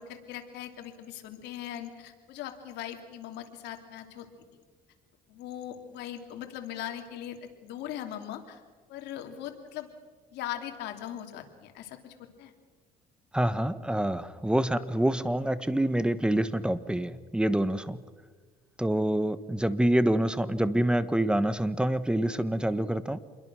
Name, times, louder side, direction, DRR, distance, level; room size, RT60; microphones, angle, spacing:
voice 1, 0.0-4.3 5.3-8.6 8.9-9.9 10.3-12.5, left 11 dB, 85° left, 5 dB, 2.9 m, -40 dB
voice 2, 13.3-18.0 18.8-23.2, right 1 dB, 5° right, 14 dB, 1.1 m, -26 dB
28.0 x 22.0 x 6.3 m, 1.5 s
cardioid pair, 110°, 17 cm